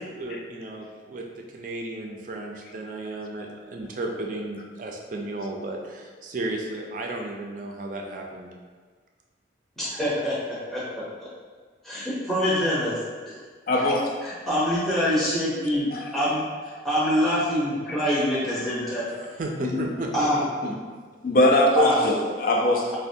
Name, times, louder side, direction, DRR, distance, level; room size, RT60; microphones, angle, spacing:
voice 1, 0.2-1.2 1.5-8.5 19.2-20.1, right 2 dB, 45° right, 1 dB, 0.4 m, -34 dB
voice 2, 9.8-10.4 10.7-11.3 11.8-13.0 14.2-19.1 20.1-20.4 21.8-22.0, equal, ahead, -10 dB, 0.7 m, -25 dB
voice 3, 13.7-14.1 15.9-16.0 17.1-17.2 17.9-18.0 18.8-18.9 19.6-19.9 20.6-20.7 21.2-22.9, left 1 dB, 50° left, 1 dB, 0.4 m, -22 dB
4.2 x 2.2 x 2.6 m, 1.5 s
head